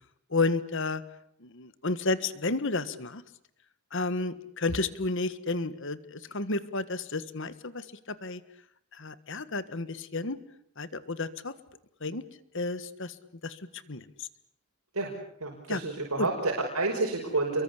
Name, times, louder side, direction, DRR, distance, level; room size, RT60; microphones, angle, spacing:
voice 1, 0.3-1.0 1.4-3.2 3.9-8.4 8.9-10.4 10.8-11.5 12.0-12.2 12.5-13.1 13.4-13.6 13.9-14.3 15.7-15.8 16.2-16.3, left 3 dB, 60° left, 14 dB, 1.5 m, -31 dB
voice 2, 15.4-17.6, right 2 dB, 80° right, 0 dB, 5.7 m, -29 dB
29.5 x 23.5 x 8.3 m, 0.70 s
head